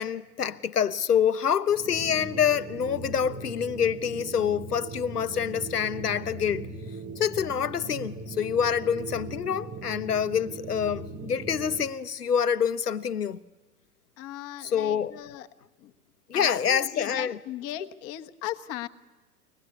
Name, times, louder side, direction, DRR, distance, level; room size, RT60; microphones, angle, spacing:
voice 1, 0.0-6.7 7.2-13.4 14.6-15.2 16.3-17.4, left 8 dB, 80° left, 1.0 m, -26 dB
sound 1, 1.7-11.9, right 3 dB, 20° right, 1.0 m, -39 dB
voice 2, 14.2-15.5 15.8-15.9 16.3-18.9, left 12 dB, 30° left, 1.2 m, -38 dB
24.0 x 19.0 x 9.7 m
figure-of-eight pair, 105°, 45 cm